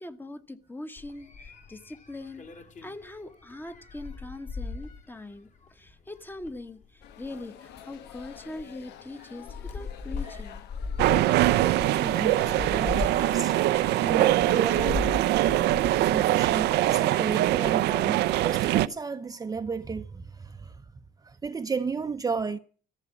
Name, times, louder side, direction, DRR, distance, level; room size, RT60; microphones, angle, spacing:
voice 1, 0.0-2.5 2.8-10.6 11.1-11.4, left 2 dB, 10° left, 1.2 m, -42 dB
sound 1, 1.0-17.7 18.0-18.5, left 4 dB, 45° left, 3.0 m, -39 dB
sound 2, 7.0-15.5, left 10 dB, 85° left, 1.2 m, -47 dB
sound 3, 11.0-18.9, right 15 dB, 80° right, 0.6 m, -23 dB
voice 2, 12.0-13.5 14.0-15.1 16.0-20.8 21.2-22.6, right 5 dB, 20° right, 0.7 m, -33 dB
14.5 x 7.3 x 9.8 m
cardioid pair, 110°, 17 cm